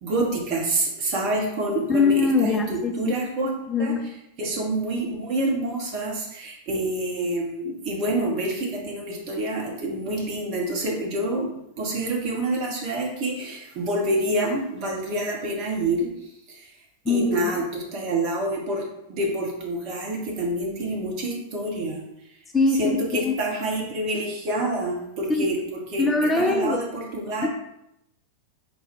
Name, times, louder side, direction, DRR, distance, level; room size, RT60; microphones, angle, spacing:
voice 1, 0.0-3.5 3.8-3.9 4.4-11.5 11.8-16.1 16.5-16.7 17.1-18.8 19.1-22.0 22.8-26.1 26.4-27.5, right 1 dB, 45° right, -1 dB, 1.2 m, -27 dB
voice 2, 1.9-3.2 3.7-4.1 17.1-17.5 22.5-23.4 25.3-25.5 26.0-26.8 27.4-27.5, left 3 dB, 15° left, 3 dB, 0.4 m, -22 dB
4.0 x 2.4 x 4.6 m, 0.81 s
figure-of-eight pair, 90°, 0 cm